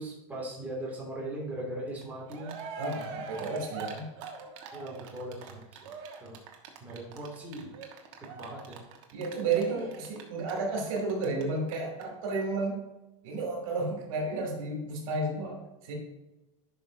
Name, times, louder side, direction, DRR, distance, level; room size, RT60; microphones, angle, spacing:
voice 1, 0.0-2.6 4.7-6.4 6.8-7.7 8.3-8.8, right 1 dB, 10° right, -5 dB, 2.5 m, -39 dB
Cheering, 2.0-2.1 2.3-11.4 11.7-11.8 12.0-12.1, right 5 dB, 60° right, 1.4 m, -43 dB
voice 2, 2.8-4.1 9.1-12.8 13.2-15.9, right 3 dB, 75° right, 0 dB, 2.8 m, -32 dB
11.0 x 5.5 x 2.7 m, 1.0 s
supercardioid pair, 135°, 18 cm